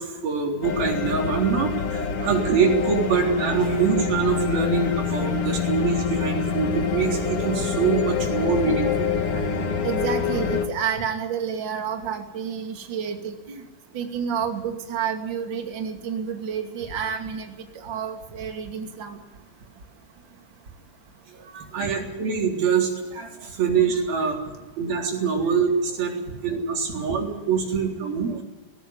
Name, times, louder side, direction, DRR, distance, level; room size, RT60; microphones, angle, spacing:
voice 1, 0.0-9.4 21.3-24.4 24.8-26.2 26.4-28.4, right 6 dB, 85° right, 1 dB, 5.6 m, -24 dB
sound 1, 0.6-10.7, left 6 dB, 45° left, 2.7 m, -26 dB
voice 2, 9.8-13.6 13.9-17.5 17.8-19.2 21.8-21.9, right 7 dB, 35° right, 4 dB, 2.8 m, -29 dB
19.5 x 17.0 x 9.7 m, 1.2 s
omnidirectional pair, 4.1 m